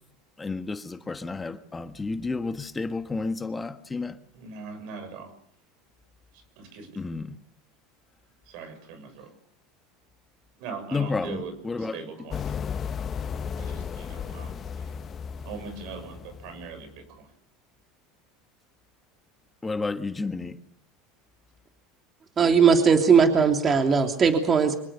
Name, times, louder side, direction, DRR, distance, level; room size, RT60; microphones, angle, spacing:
voice 1, 0.4-4.2 7.0-7.4 10.9-12.0 19.6-20.6, left 3 dB, 15° left, 1.4 m, -31 dB
voice 2, 4.3-5.3 6.3-6.9 8.4-9.3 10.6-12.6 13.6-14.5 14.8-14.9 15.4-17.3, right 5 dB, 65° right, 6.7 m, -40 dB
sound 1, 12.3-17.0, left 7 dB, 35° left, 1.0 m, -35 dB
voice 3, 22.4-24.7, right 6 dB, 30° right, 3.1 m, -19 dB
25.5 x 19.5 x 6.9 m
supercardioid pair, 95°, 0 cm